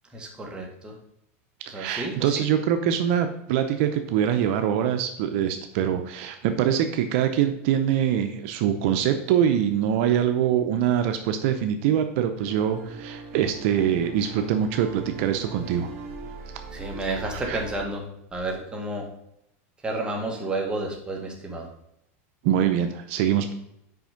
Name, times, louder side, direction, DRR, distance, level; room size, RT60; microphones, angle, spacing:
voice 1, 0.1-0.9 1.7-2.4 16.7-18.0 18.3-19.1 19.8-21.7, right 2 dB, 10° right, 0 dB, 1.7 m, -31 dB
voice 2, 1.7-15.9 17.3-17.6 22.4-23.5, right 9 dB, 65° right, 7 dB, 0.7 m, -24 dB
sound 1, 12.4-17.9, right 5 dB, 80° right, 1.9 m, -40 dB
6.0 x 5.2 x 5.1 m, 0.79 s
supercardioid pair, 135°, 8 cm